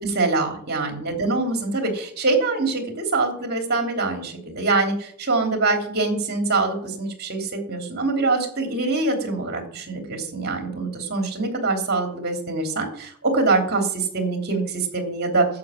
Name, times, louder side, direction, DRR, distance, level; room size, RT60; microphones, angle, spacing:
voice 1, 0.0-15.5, right 3 dB, 45° right, 3 dB, 3.2 m, -24 dB
11.0 x 7.7 x 7.4 m, 0.62 s
head